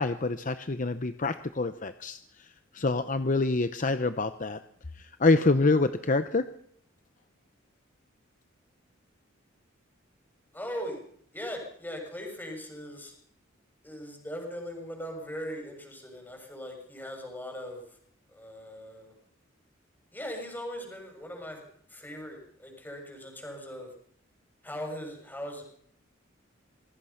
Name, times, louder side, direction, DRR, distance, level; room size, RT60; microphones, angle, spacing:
voice 1, 0.0-2.5 2.7-4.6 5.0-6.4, left 3 dB, 40° left, 10 dB, 0.8 m, -26 dB
voice 2, 10.5-11.0 11.3-13.1 13.8-18.0 18.3-19.2 20.1-23.9 24.6-25.6, equal, 10° left, 2 dB, 6.9 m, -39 dB
26.5 x 21.5 x 5.8 m, 0.65 s
head